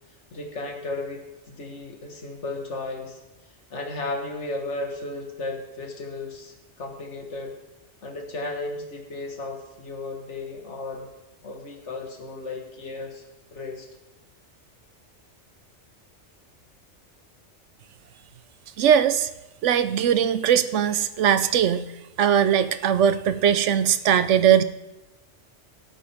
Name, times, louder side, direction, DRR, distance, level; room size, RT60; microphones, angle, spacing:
voice 1, 0.3-3.2 3.7-7.5 8.0-11.1 11.4-13.2 13.5-13.9, left 2 dB, 75° left, 2 dB, 2.0 m, -34 dB
voice 2, 18.8-19.3 19.6-21.9 22.2-24.6, right 9 dB, 80° right, 13 dB, 1.0 m, -20 dB
17.0 x 8.6 x 3.6 m, 1.0 s
omnidirectional pair, 1.2 m